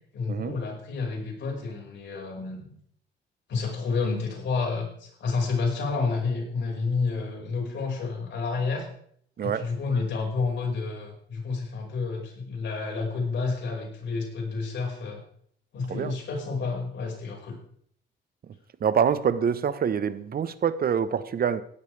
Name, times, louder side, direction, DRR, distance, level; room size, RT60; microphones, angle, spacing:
voice 1, 0.1-2.8 3.5-8.9 9.4-15.2 15.7-17.6, left 4 dB, 65° left, 5.3 m, -30 dB
voice 2, 18.8-21.6, right 7 dB, 50° right, 0.9 m, -25 dB
16.5 x 12.0 x 3.4 m
cardioid pair, 90°, 20 cm